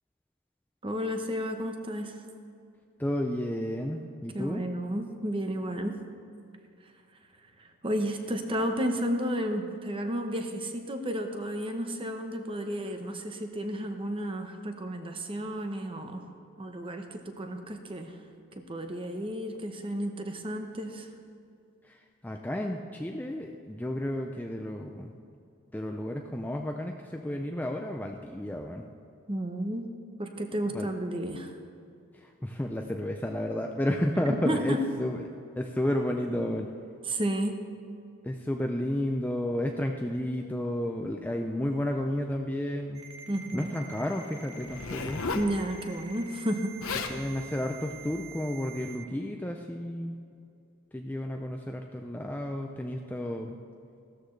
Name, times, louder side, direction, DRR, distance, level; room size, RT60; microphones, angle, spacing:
voice 1, 0.8-2.2 4.3-6.0 6.8-6.9 7.6-16.2 16.6-18.2 18.6-21.1 29.3-29.9 30.2-31.5 34.3-34.9 37.0-37.6 43.3-43.7 45.3-47.1, equal, 25° right, 5 dB, 0.9 m, -32 dB
voice 2, 3.0-4.6 21.9-25.1 25.7-28.8 30.7-30.9 32.1-35.2 35.6-36.7 38.2-43.1 43.5-45.2 47.1-50.2 50.9-53.6, left 1 dB, 10° left, 2 dB, 0.4 m, -32 dB
Ringtone, 42.9-49.0, right 5 dB, 80° right, 1.5 m, -47 dB
Zipper (clothing), 44.7-45.5 46.5-46.6 46.8-47.2 47.9-48.1, left 4 dB, 85° left, 0.9 m, -34 dB
15.5 x 13.0 x 3.2 m, 2.5 s
head